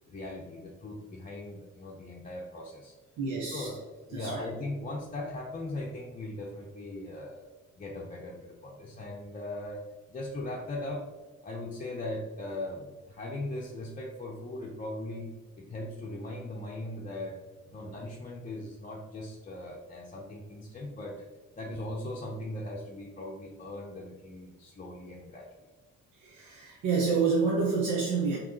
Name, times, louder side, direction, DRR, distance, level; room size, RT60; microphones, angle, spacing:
voice 1, 0.1-2.9 3.5-3.8 4.1-7.5 7.8-11.1 11.4-17.4 17.7-21.2 21.5-25.5, left 1 dB, 25° left, -3 dB, 0.7 m, -39 dB
voice 2, 3.2-3.7 4.1-4.4 26.1-28.4, right 4 dB, 80° right, -3 dB, 0.9 m, -28 dB
4.7 x 3.1 x 3.0 m, 1.2 s
cardioid pair, 90°, 30 cm